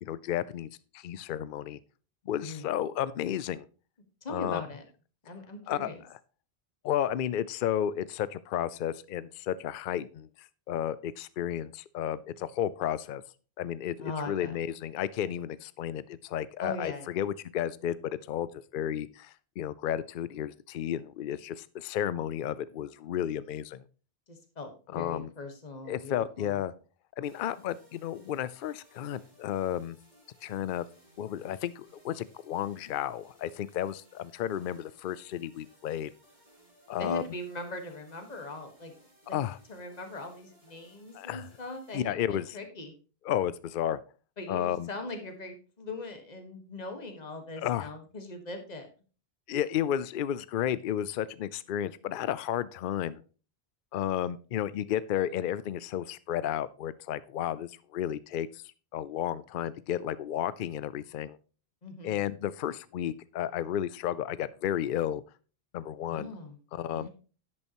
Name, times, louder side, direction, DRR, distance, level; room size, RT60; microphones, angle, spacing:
voice 1, 0.0-0.7 0.9-1.8 2.3-3.7 4.3-4.6 5.7-6.2 6.8-13.2 13.6-23.8 24.9-25.3 25.9-26.7 27.2-30.0 30.4-30.8 31.2-36.1 36.9-37.2 39.3-39.6 41.1-41.5 41.9-42.6 43.2-44.0 44.5-44.9 47.6-47.9 49.5-53.2 53.9-58.6 58.9-61.4 62.0-65.2 65.7-66.3 66.7-67.1, left 10 dB, 60° left, 17 dB, 0.7 m, -32 dB
voice 2, 4.2-4.8 5.2-6.0 14.0-14.6 16.6-17.1 24.3-26.6 37.0-38.9 39.3-39.4 39.7-42.9 44.4-48.9 61.8-62.2 66.1-66.6 66.9-67.1, left 2 dB, 40° left, 5 dB, 1.7 m, -40 dB
sound 1, 27.2-42.0, right 1 dB, 40° right, 3.6 m, -62 dB
10.5 x 8.8 x 3.0 m, 0.36 s
omnidirectional pair, 1.1 m